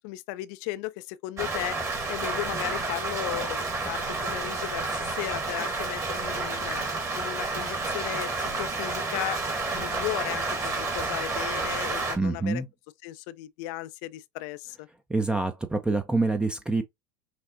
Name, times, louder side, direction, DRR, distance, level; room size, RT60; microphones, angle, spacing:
voice 1, 0.0-1.8 2.1-6.8 7.2-9.4 9.7-12.6 13.0-14.9, left 16 dB, 60° left, 0.4 m, -35 dB
Rain, 1.4-12.2, right 3 dB, 30° right, 1.6 m, -30 dB
voice 2, 12.1-12.7 15.1-16.8, right 3 dB, 10° right, 0.5 m, -26 dB
5.9 x 2.1 x 2.6 m
hypercardioid pair, 85°, 11 cm